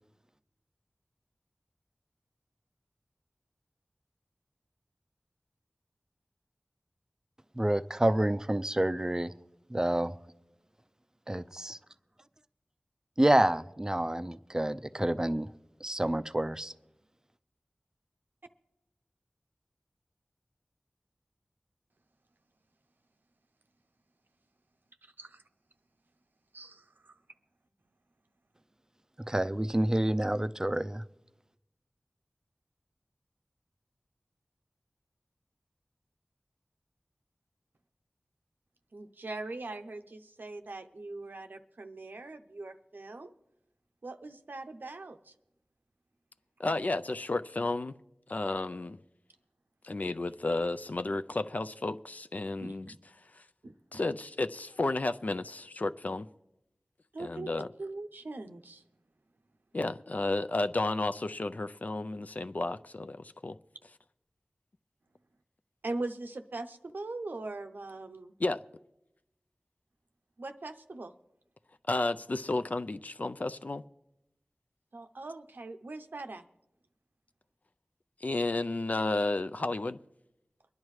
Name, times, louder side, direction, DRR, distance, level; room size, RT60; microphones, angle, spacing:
voice 1, 7.6-9.3 9.7-10.1 11.3-11.8 13.2-15.5 15.8-16.7 29.3-31.0, right 1 dB, 20° right, 0.4 m, -28 dB
voice 2, 25.0-25.4 26.5-27.2 38.9-43.3 44.0-45.3 46.7-46.8 52.6-53.0 53.6-54.0 57.1-58.8 65.8-68.3 70.4-71.1 74.9-76.4, right 2 dB, 80° right, 0.6 m, -41 dB
voice 3, 46.6-47.9 48.3-49.0 49.8-52.9 53.3-53.4 53.9-56.3 57.2-57.7 59.7-63.6 68.4-68.6 71.9-73.8 78.2-80.0, left 2 dB, 55° left, 0.4 m, -32 dB
24.0 x 10.5 x 3.2 m
wide cardioid pair, 45°, 3 cm